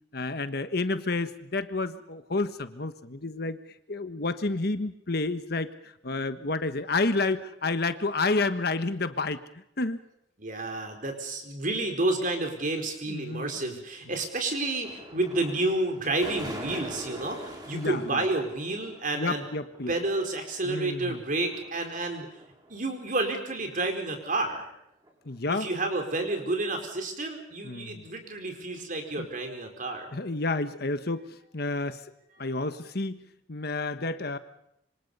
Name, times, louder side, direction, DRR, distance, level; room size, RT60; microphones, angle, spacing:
voice 1, 0.1-3.6 3.9-10.0 13.1-13.8 17.7-18.2 19.1-19.9 20.6-21.2 25.2-25.7 27.6-28.0 29.2-29.3 30.1-31.2 31.5-32.0 32.4-34.4, left 3 dB, 60° left, 10 dB, 1.3 m, -30 dB
voice 2, 10.4-19.4 19.9-22.3 22.7-24.7 25.5-30.1, right 2 dB, 50° right, 4 dB, 4.7 m, -30 dB
sound 1, 14.8-22.7 23.2-23.3 23.8-23.9 24.5-24.6 25.0-25.5 26.3-26.4, right 1 dB, 25° right, 5.0 m, -43 dB
27.0 x 25.0 x 5.6 m, 0.79 s
head